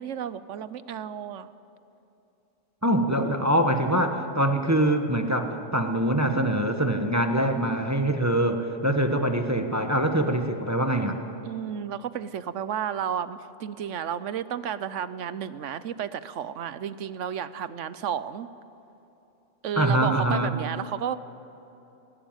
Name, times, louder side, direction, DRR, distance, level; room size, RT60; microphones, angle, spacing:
voice 1, 0.0-1.5 11.4-18.5 19.6-21.2, right 9 dB, 70° right, 15 dB, 1.0 m, -32 dB
voice 2, 2.8-11.2 19.8-20.5, right 1 dB, 15° right, 5 dB, 1.2 m, -24 dB
19.5 x 18.5 x 9.0 m, 3.0 s
omnidirectional pair, 1.4 m